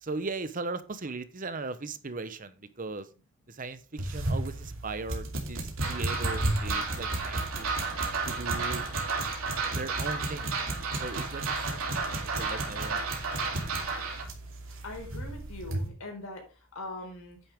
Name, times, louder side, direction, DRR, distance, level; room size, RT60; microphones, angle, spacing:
voice 1, 0.0-3.1 3.5-7.7 8.2-8.9 9.7-10.5 11.0-11.4 11.7-13.0, right 3 dB, 40° right, 12 dB, 0.9 m, -38 dB
sound 1, 4.0-15.9, right 1 dB, 65° right, 2.7 m, -35 dB
sound 2, 5.8-14.2, right 4 dB, 90° right, 3.1 m, -33 dB
voice 2, 14.8-16.4 16.7-17.4, left 2 dB, 80° left, 2 dB, 4.4 m, -41 dB
9.7 x 9.1 x 3.6 m, 0.32 s
head